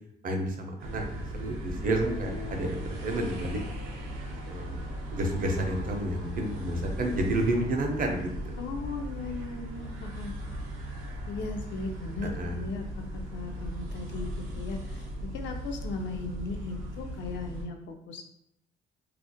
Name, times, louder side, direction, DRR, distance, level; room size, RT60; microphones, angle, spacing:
voice 1, 0.2-3.6 4.5-4.7 5.1-8.5 12.2-12.6, right 1 dB, 45° right, 3 dB, 0.5 m, -30 dB
sound 1, 0.8-17.7, right 1 dB, 85° right, 0.6 m, -37 dB
voice 2, 8.6-10.3 11.3-15.1 15.3-18.2, left 3 dB, 70° left, 4 dB, 0.4 m, -37 dB
2.4 x 2.0 x 2.7 m, 0.75 s
cardioid pair, 90°, 20 cm